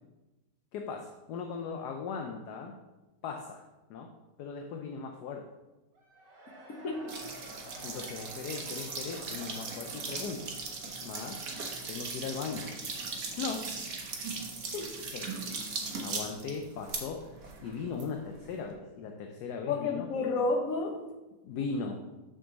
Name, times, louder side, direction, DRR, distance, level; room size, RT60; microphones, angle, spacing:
voice 1, 0.7-2.8 3.2-3.6 3.9-4.1 4.4-5.5 7.8-10.5 11.0-11.4 11.9-12.7 13.4-13.7 15.1-15.3 16.0-20.1 21.4-22.0, left 5 dB, 70° left, 3 dB, 1.2 m, -38 dB
Cheering / Crowd, 5.9-12.7, right 1 dB, 80° right, 2.4 m, -53 dB
voice 2, 6.7-7.1 14.7-15.0 19.6-21.0 21.5-21.7, left 3 dB, 55° left, 2 dB, 1.4 m, -31 dB
sound 1, 7.1-18.7, right 4 dB, 55° right, 1.5 m, -39 dB
7.1 x 6.2 x 4.0 m, 1.1 s
omnidirectional pair, 1.9 m